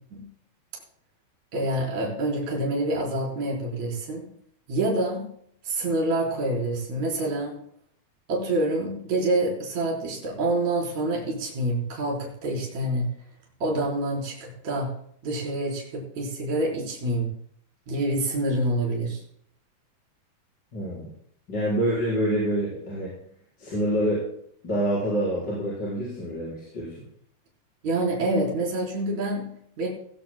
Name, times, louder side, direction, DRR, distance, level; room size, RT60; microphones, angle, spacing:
voice 1, 1.5-4.3 4.7-5.3 5.6-7.6 8.3-13.1 13.6-14.9 15.2-17.3 17.9-19.2 27.8-29.9, right 1 dB, 45° right, -3 dB, 5.2 m, -27 dB
voice 2, 20.7-21.1 21.5-23.1 23.6-24.2 24.6-26.9, right 1 dB, 25° left, -7 dB, 4.9 m, -26 dB
17.5 x 16.0 x 2.2 m, 0.65 s
omnidirectional pair, 4.6 m